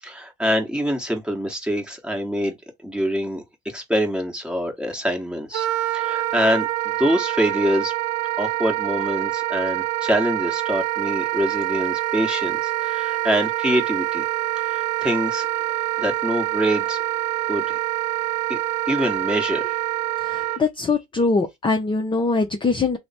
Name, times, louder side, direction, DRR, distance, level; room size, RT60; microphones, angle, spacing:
voice 1, 0.0-2.6 2.8-5.7 5.9-7.9 8.4-14.3 14.6-15.5 16.0-17.0 17.5-17.8 18.5-18.6 18.9-19.8, equal, 5° right, 1.2 m, -25 dB
Wind instrument woodwind instrument, 5.5-20.6, right 15 dB, 80° right, 0.5 m, -25 dB
voice 2, 20.2-23.0, left 3 dB, 15° left, 0.6 m, -22 dB
3.1 x 2.1 x 4.1 m
hypercardioid pair, 80°, 30 cm